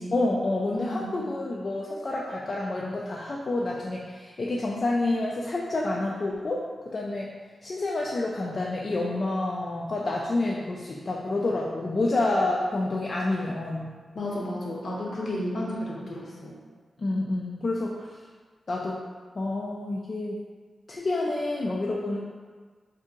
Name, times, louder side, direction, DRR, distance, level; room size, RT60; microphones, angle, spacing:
voice 1, 0.1-6.6 6.9-7.3 7.6-13.9 17.0-18.1 18.7-19.0 19.3-20.4 20.9-22.2, left 2 dB, 50° left, -3 dB, 0.3 m, -28 dB
voice 2, 0.7-1.1 14.1-16.6, left 1 dB, 70° left, -4 dB, 0.8 m, -32 dB
2.7 x 2.7 x 3.6 m, 1.5 s
cardioid pair, 60°, 0 cm